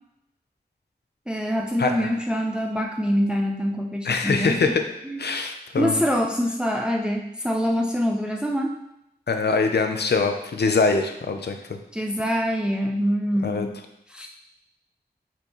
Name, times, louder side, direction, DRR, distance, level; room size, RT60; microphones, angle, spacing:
voice 1, 1.3-4.6 5.0-5.2 5.8-8.7 11.9-13.8 14.1-14.3, equal, 5° right, 1 dB, 0.6 m, -25 dB
voice 2, 1.8-2.1 4.0-4.8 5.2-6.0 9.3-11.8 13.4-13.7, left 4 dB, 85° left, 6 dB, 0.7 m, -23 dB
8.0 x 4.3 x 3.1 m, 0.84 s
wide cardioid pair, 55°, 17 cm